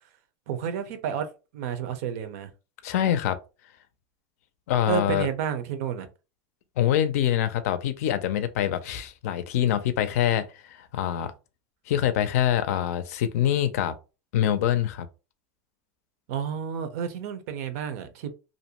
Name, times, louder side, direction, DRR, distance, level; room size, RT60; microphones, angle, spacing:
voice 1, 0.5-1.3 1.5-2.5 4.9-6.1 16.3-18.3, right 8 dB, 75° right, 0.6 m, -30 dB
voice 2, 2.8-3.4 4.7-5.3 6.8-11.3 11.9-14.0 14.3-15.1, left 11 dB, 85° left, 0.4 m, -25 dB
2.6 x 2.1 x 2.8 m
supercardioid pair, 135°, 8 cm